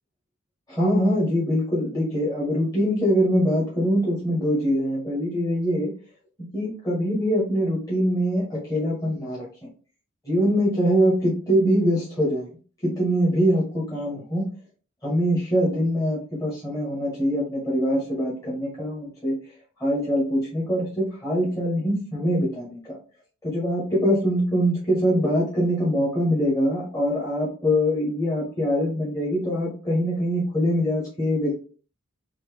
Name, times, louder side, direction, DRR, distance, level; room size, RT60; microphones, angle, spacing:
voice 1, 0.7-5.9 6.4-9.5 10.2-12.5 12.8-14.5 15.0-19.3 19.8-23.0 23.4-31.6, equal, 15° left, -7 dB, 1.4 m, -23 dB
4.1 x 2.8 x 3.4 m, 0.38 s
head